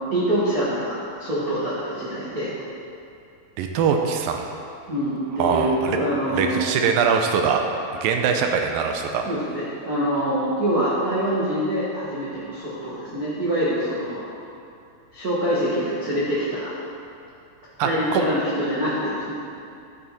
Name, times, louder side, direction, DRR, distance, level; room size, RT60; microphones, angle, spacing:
voice 1, 0.1-2.5 4.9-6.8 9.2-14.3 15.1-16.7 17.8-19.3, equal, 60° right, -10 dB, 0.9 m, -25 dB
voice 2, 3.6-4.5 5.4-6.0 6.3-7.7 7.9-9.3 17.8-18.2, right 6 dB, 80° right, 3 dB, 2.3 m, -22 dB
10.5 x 7.1 x 4.1 m, 2.6 s
omnidirectional pair, 4.3 m